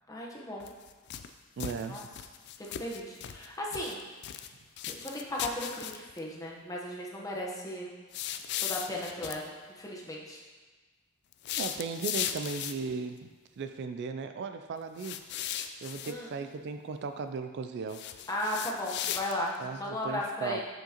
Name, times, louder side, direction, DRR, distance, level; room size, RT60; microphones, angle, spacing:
voice 1, 0.1-0.7 1.9-2.0 2.6-4.0 5.0-7.9 8.6-10.4 16.0-16.3 18.3-20.6, left 1 dB, 15° left, -3 dB, 1.0 m, -36 dB
sound 1, 0.6-1.3 1.6-3.5 3.7-4.5 4.8-6.2 8.1-9.4 11.3-12.9 15.0-16.1 17.9-19.6, left 10 dB, 55° left, 0.3 m, -37 dB
voice 2, 1.6-2.1 11.6-13.3 13.6-15.3 15.8-18.0 19.6-20.6, right 5 dB, 55° right, 8 dB, 0.3 m, -37 dB
7.3 x 6.3 x 2.9 m, 1.3 s
head